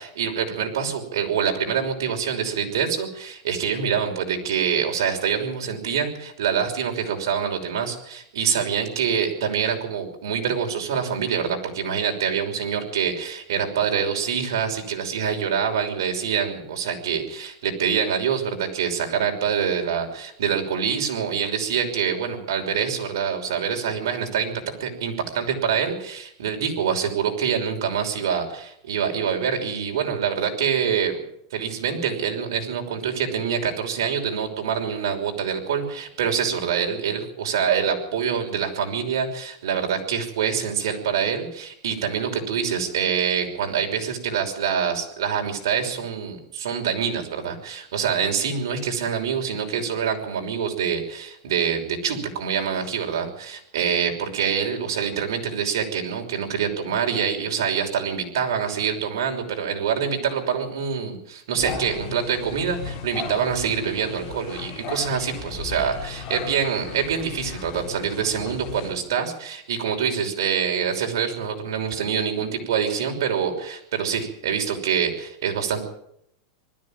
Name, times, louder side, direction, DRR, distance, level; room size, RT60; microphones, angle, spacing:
voice 1, 0.0-24.5 24.8-31.2 31.5-75.8, right 7 dB, 85° right, 3 dB, 5.7 m, -25 dB
sound 1, 61.6-68.9, left 6 dB, 35° left, 5.1 m, -36 dB
21.0 x 14.0 x 9.0 m, 0.74 s
supercardioid pair, 170°, 2 cm